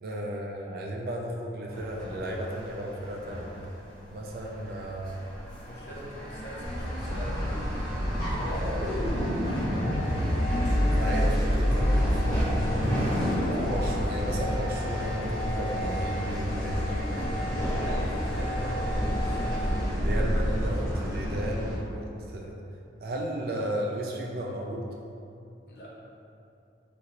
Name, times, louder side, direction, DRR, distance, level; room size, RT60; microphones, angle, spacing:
voice 1, 0.0-3.5 4.1-5.1 10.7-12.7 13.6-17.4 18.9-19.2 20.0-22.6 23.0-24.9, right 1 dB, 55° right, -1 dB, 0.4 m, -34 dB
sound 1, 1.7-19.9, left 1 dB, 20° left, 0.9 m, -35 dB
voice 2, 5.6-7.7 8.3-9.7 17.4-17.5 17.8-19.6 25.7-25.9, equal, 60° left, -5 dB, 0.5 m, -42 dB
sound 2, 6.6-21.8, equal, 20° right, 0.9 m, -33 dB
sound 3, 7.0-14.6, equal, 75° right, 1.3 m, -28 dB
2.8 x 2.6 x 2.9 m, 2.6 s
head